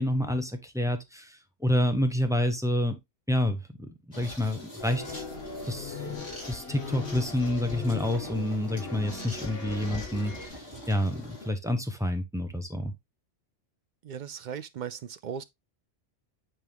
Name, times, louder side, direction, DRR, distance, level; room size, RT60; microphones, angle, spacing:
voice 1, 0.0-3.0 3.3-5.2 5.6-6.2 6.4-12.9, left 1 dB, 5° right, 0.9 m, -29 dB
sound 1, 4.1-11.5, left 1 dB, 85° left, 3.5 m, -43 dB
sound 2, 4.8-10.5, left 4 dB, 55° left, 1.6 m, -39 dB
voice 2, 14.0-15.4, right 8 dB, 60° right, 0.5 m, -37 dB
8.9 x 3.5 x 3.5 m
omnidirectional pair, 1.2 m